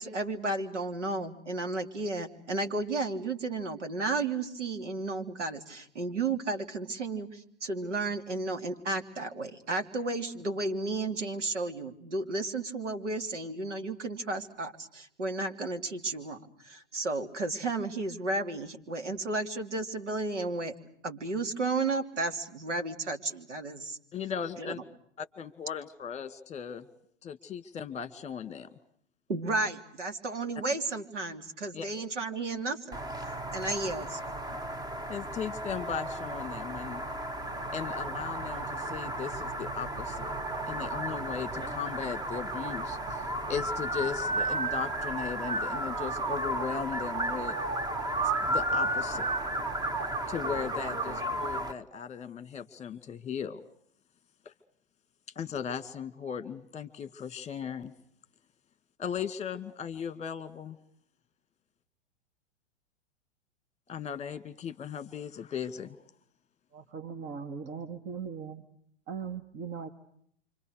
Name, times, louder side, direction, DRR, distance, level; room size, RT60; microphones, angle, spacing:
voice 1, 0.0-20.7 21.0-24.0 24.6-24.7 29.3-33.0 33.5-34.2, right 3 dB, 80° right, 5 dB, 3.2 m, -33 dB
voice 2, 24.1-24.8 25.2-26.8 27.2-28.7 31.7-31.9 35.1-37.0 37.7-40.3 40.7-47.6 48.4-49.3 50.3-53.6 55.4-57.9 59.0-60.8 63.9-66.0, left 7 dB, 20° left, 12 dB, 2.2 m, -37 dB
sound 1, 32.9-51.7, right 2 dB, 10° right, 1.5 m, -33 dB
voice 3, 66.7-68.6 69.1-69.9, right 6 dB, 30° right, 8 dB, 2.2 m, -39 dB
29.0 x 25.5 x 6.6 m, 0.68 s
hypercardioid pair, 110°, 35 cm